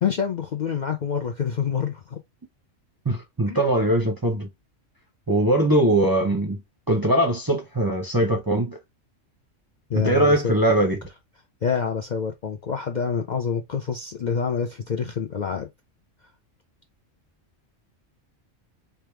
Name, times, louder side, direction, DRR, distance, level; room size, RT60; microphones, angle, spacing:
voice 1, 0.0-2.2 3.5-3.6 9.9-10.6 11.6-15.7, left 6 dB, 55° left, 0.5 m, -27 dB
voice 2, 3.0-4.5 5.3-6.6 6.9-8.8 9.9-11.0, right 1 dB, 25° right, 0.5 m, -21 dB
3.4 x 2.4 x 4.4 m
omnidirectional pair, 1.3 m